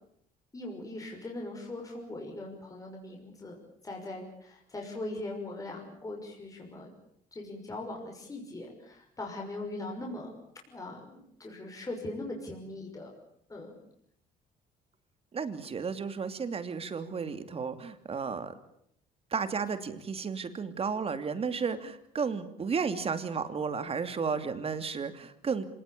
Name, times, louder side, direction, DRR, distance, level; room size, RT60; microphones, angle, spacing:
voice 1, 0.5-3.6 3.8-6.9 7.3-10.3 10.7-13.1 13.5-13.7, left 2 dB, 20° left, 0 dB, 6.0 m, -40 dB
voice 2, 15.3-18.5 19.3-25.7, right 5 dB, 35° right, 10 dB, 2.8 m, -33 dB
26.5 x 19.0 x 8.7 m, 0.71 s
cardioid pair, 110°, 17 cm